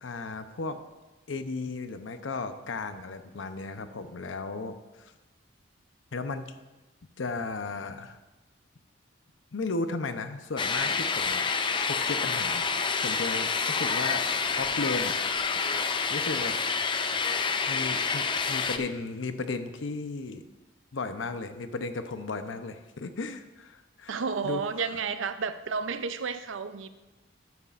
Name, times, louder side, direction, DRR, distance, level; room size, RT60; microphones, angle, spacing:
voice 1, 0.0-0.8 1.3-5.1 6.1-6.6 7.2-8.2 9.5-11.4 11.9-15.2 16.1-16.6 17.7-20.4 20.9-24.6, left 3 dB, 85° left, 9 dB, 0.7 m, -35 dB
sound 1, 10.6-18.8, left 5 dB, 25° left, 0.4 m, -28 dB
voice 2, 24.1-26.9, right 5 dB, 90° right, 12 dB, 0.6 m, -31 dB
12.5 x 9.3 x 2.5 m, 1.1 s
head